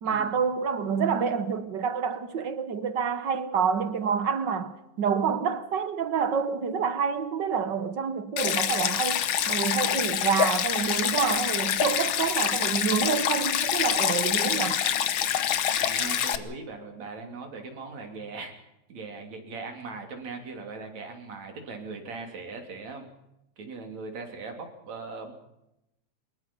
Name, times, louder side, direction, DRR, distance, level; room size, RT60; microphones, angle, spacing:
voice 1, 0.0-14.8, right 6 dB, 55° right, 1.3 m, -28 dB
Stream, 8.4-16.4, left 9 dB, 60° left, 1.5 m, -26 dB
voice 2, 15.8-18.5 18.9-23.1 23.6-25.3, right 4 dB, 70° right, 4.5 m, -39 dB
24.5 x 21.5 x 5.5 m
omnidirectional pair, 3.3 m